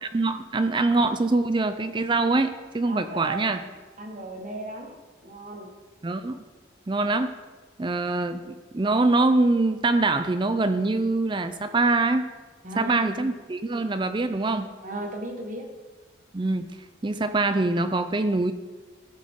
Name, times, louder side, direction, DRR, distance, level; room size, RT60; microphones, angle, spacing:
voice 1, 0.1-3.6 6.0-6.4 6.9-7.3 7.8-12.3 12.8-14.7 16.3-16.7 17.0-18.5, right 2 dB, 25° right, 10 dB, 0.4 m, -24 dB
voice 2, 2.9-3.5 4.0-5.7 8.3-8.4 12.6-13.3 14.8-15.7, right 2 dB, 40° right, 2 dB, 1.4 m, -36 dB
14.0 x 7.6 x 3.7 m, 1.3 s
head